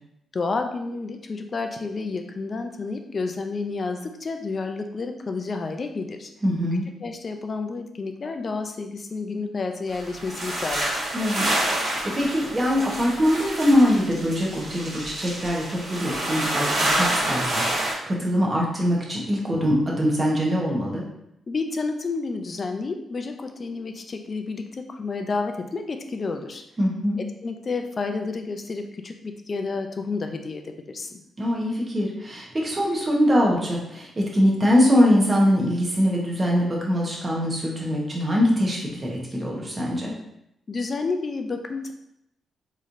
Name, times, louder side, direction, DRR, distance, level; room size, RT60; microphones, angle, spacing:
voice 1, 0.3-6.3 7.0-11.0 21.5-26.6 27.4-31.2 40.7-41.9, left 4 dB, 35° left, 5 dB, 0.4 m, -30 dB
voice 2, 6.4-6.9 11.1-11.4 11.8-21.0 26.8-27.2 31.4-40.1, equal, 20° right, -2 dB, 0.9 m, -23 dB
sound 1, 9.9-17.9, right 1 dB, 50° right, 1.3 m, -27 dB
4.0 x 3.0 x 2.6 m, 0.80 s
cardioid pair, 130°, 0 cm